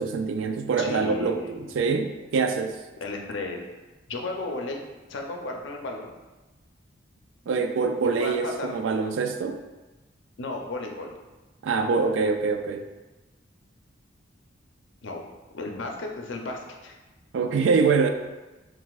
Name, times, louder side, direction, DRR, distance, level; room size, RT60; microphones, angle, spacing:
voice 1, 0.0-2.8 7.5-9.6 11.6-12.9 17.3-18.1, right 4 dB, 75° right, 6 dB, 0.3 m, -25 dB
voice 2, 0.8-1.9 3.0-3.6 4.1-4.8 5.1-6.1 8.2-8.7 10.4-11.1 15.0-15.2 15.5-17.0, left 2 dB, 70° left, 2 dB, 0.6 m, -34 dB
5.8 x 2.5 x 2.4 m, 1.1 s
head